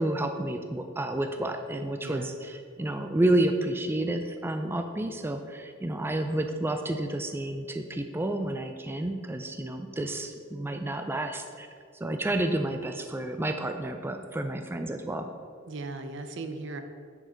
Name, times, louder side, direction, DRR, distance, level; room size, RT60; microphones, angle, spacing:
voice 1, 0.0-11.7 11.9-15.3, right 1 dB, 10° right, 6 dB, 0.3 m, -30 dB
voice 2, 2.0-2.3 15.7-16.8, right 3 dB, 65° right, 7 dB, 0.7 m, -37 dB
8.9 x 6.4 x 3.8 m, 2.2 s
head